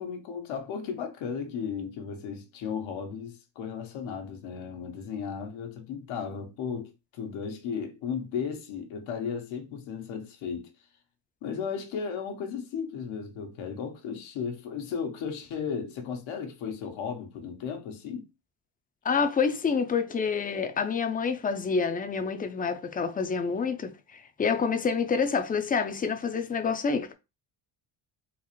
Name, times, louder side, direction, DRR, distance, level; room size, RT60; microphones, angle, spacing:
voice 1, 0.0-10.7 11.4-18.3, left 6 dB, 85° left, 1.1 m, -35 dB
voice 2, 19.0-27.1, left 5 dB, 20° left, 0.4 m, -28 dB
3.9 x 2.4 x 3.0 m
cardioid pair, 120°, 47 cm